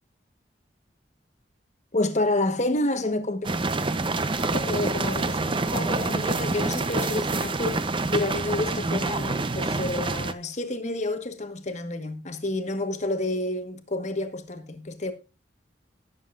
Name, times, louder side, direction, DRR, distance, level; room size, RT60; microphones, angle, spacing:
voice 1, 1.9-3.5 4.5-7.8 8.1-15.1, left 2 dB, 40° left, 1.2 m, -29 dB
sound 1, 3.4-10.3, right 3 dB, 30° right, 0.7 m, -27 dB
18.0 x 7.6 x 2.5 m
head